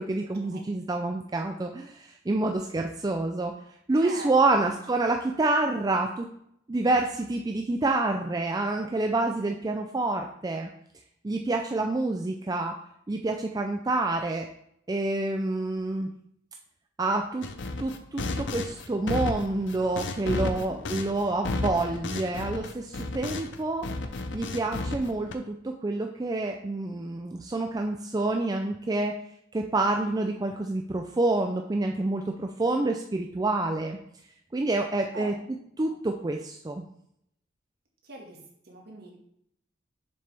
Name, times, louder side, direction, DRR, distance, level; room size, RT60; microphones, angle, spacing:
voice 1, 0.0-3.5 3.9-6.3 6.7-10.7 11.2-12.8 13.1-14.5 14.9-16.1 17.0-17.5 17.8-23.9 24.3-29.1 29.5-34.0 34.5-35.3 35.8-36.8, right 2 dB, 20° right, 3 dB, 0.4 m, -28 dB
voice 2, 4.0-4.7 20.5-20.8 35.1-35.3 35.8-36.0 38.0-39.2, right 1 dB, 55° right, 0 dB, 1.8 m, -43 dB
sound 1, 17.4-23.6 23.8-25.3, left 2 dB, 65° left, 0.6 m, -33 dB
6.8 x 6.6 x 3.4 m, 0.72 s
head